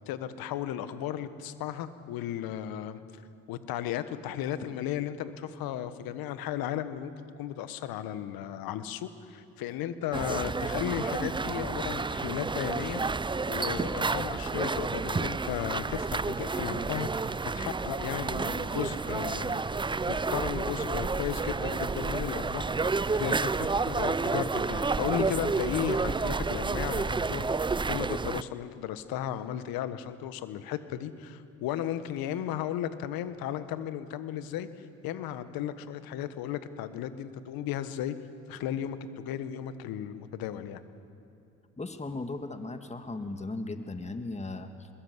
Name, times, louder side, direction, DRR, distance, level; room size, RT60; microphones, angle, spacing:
voice 1, 0.1-3.0 3.5-13.0 13.5-19.6 20.1-22.7 23.1-27.5 27.9-34.7 35.0-38.1 38.5-40.8, left 10 dB, 70° left, 12 dB, 1.4 m, -35 dB
sound 1, 10.1-28.4, right 4 dB, 15° right, 0.5 m, -30 dB
voice 2, 41.8-44.9, left 2 dB, 20° left, 7 dB, 1.9 m, -37 dB
23.5 x 21.5 x 8.2 m, 2.6 s
hypercardioid pair, 55°, 36 cm